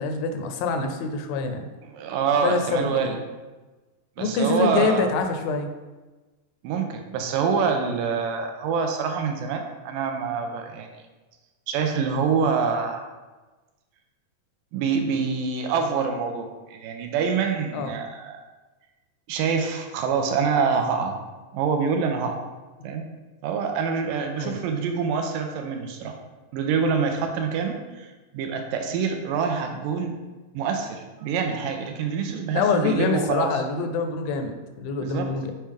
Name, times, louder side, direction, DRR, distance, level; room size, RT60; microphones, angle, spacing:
voice 1, 0.0-1.6 2.4-3.1 4.2-5.7 17.7-18.0 22.8-22.9 24.4-24.6 32.5-35.5, left 4 dB, 85° left, 6 dB, 2.4 m, -25 dB
voice 2, 1.9-3.2 4.2-5.1 6.6-10.9 11.7-13.0 14.7-18.4 19.3-21.2 21.5-22.4 22.8-23.0 23.4-26.1 26.5-30.2 30.5-33.5 35.0-35.3, right 5 dB, 85° right, 4 dB, 2.3 m, -26 dB
7.4 x 4.4 x 3.5 m, 1.2 s
omnidirectional pair, 4.0 m